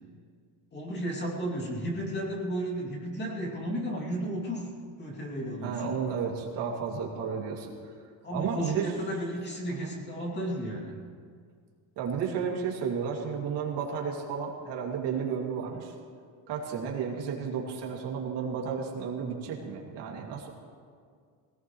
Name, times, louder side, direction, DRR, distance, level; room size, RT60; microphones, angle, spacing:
voice 1, 0.7-4.7 5.0-5.9 8.2-11.0, right 1 dB, 25° left, -2 dB, 2.6 m, -33 dB
voice 2, 5.6-7.7 8.3-8.9 9.7-9.9 12.0-15.9 16.5-20.5, right 6 dB, 70° right, -1 dB, 2.5 m, -32 dB
20.0 x 18.0 x 3.1 m, 2.1 s
cardioid pair, 170°, 43 cm